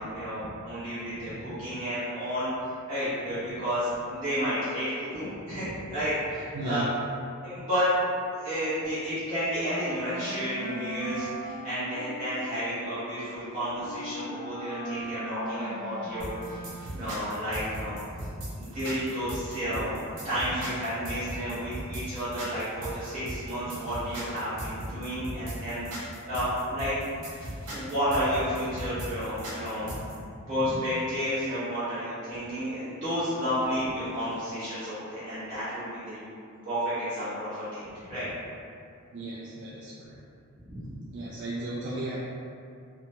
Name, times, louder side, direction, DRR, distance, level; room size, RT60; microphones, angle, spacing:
voice 1, 0.0-2.5 2.9-6.8 7.4-7.9 8.3-16.6 16.9-18.0 18.6-20.0 20.2-25.8 26.2-26.9 27.7-29.9 30.5-36.2 36.6-38.3 40.6-41.0, equal, 35° right, -14 dB, 0.8 m, -31 dB
voice 2, 6.5-6.9 39.1-40.2 41.1-42.2, right 1 dB, 50° right, -7 dB, 0.3 m, -34 dB
Wind instrument woodwind instrument, 9.6-17.1, right 1 dB, 55° left, 0.5 m, -40 dB
sound 1, 16.2-30.2, right 1 dB, 80° right, 0.7 m, -38 dB
2.8 x 2.2 x 2.7 m, 2.5 s
head